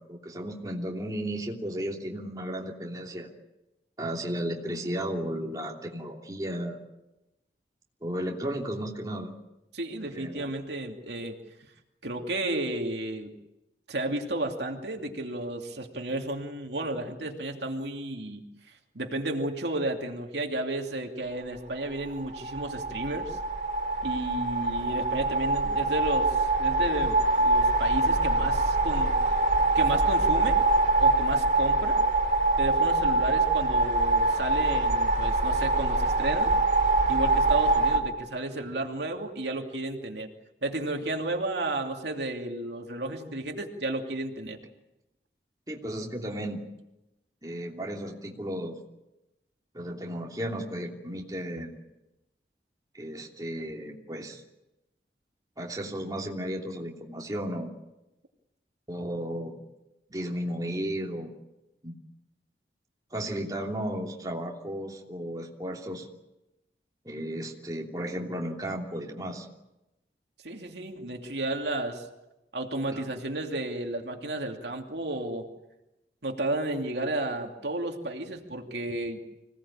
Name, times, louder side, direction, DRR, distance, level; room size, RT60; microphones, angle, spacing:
voice 1, 0.0-3.3 4.0-6.8 8.0-9.3 10.0-10.5 45.7-46.6 47.4-48.8 49.7-51.7 52.9-54.4 55.6-57.7 58.9-59.6 60.1-61.3 61.8-61.9 63.1-66.1 67.0-69.5 72.9-73.0, equal, 20° right, -1 dB, 3.0 m, -34 dB
voice 2, 9.7-11.4 12.0-13.3 13.9-18.4 18.9-23.4 24.0-29.1 29.7-30.6 31.0-32.0 32.6-36.5 37.1-40.3 40.6-44.6 70.4-72.1 72.5-75.5 76.2-79.2, right 2 dB, 80° right, 2 dB, 2.7 m, -32 dB
sound 1, 22.1-38.0, right 2 dB, 45° right, 3.5 m, -24 dB
25.5 x 18.0 x 8.8 m, 0.96 s
head